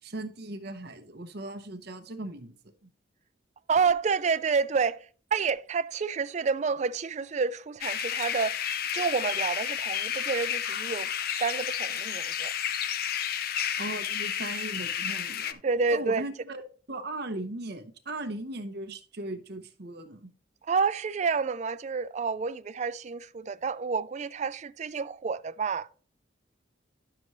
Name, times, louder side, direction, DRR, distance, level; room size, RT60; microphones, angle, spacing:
voice 1, 0.0-2.5 2.8-2.9 13.8-15.6 15.9-16.6 16.9-20.3, right 2 dB, 55° right, 0.9 m, -38 dB
voice 2, 3.7-8.6 8.9-11.1 11.4-12.5 15.6-16.2 20.6-25.9, right 5 dB, 35° right, 0.3 m, -29 dB
Birds in Rain Sounds (Scotland), 7.8-15.5, left 9 dB, 50° left, 0.5 m, -31 dB
11.0 x 6.8 x 3.1 m
head